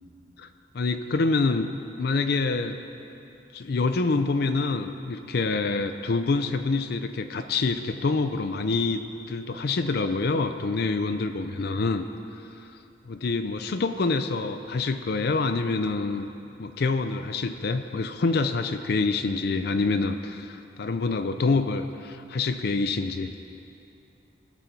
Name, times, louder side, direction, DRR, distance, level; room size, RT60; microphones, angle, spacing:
voice 1, 0.7-1.7 2.0-2.8 3.5-12.0 12.3-12.7 13.1-16.3 16.6-23.3, left 3 dB, 60° left, 8 dB, 0.5 m, -26 dB
19.5 x 6.9 x 4.6 m, 2.8 s
head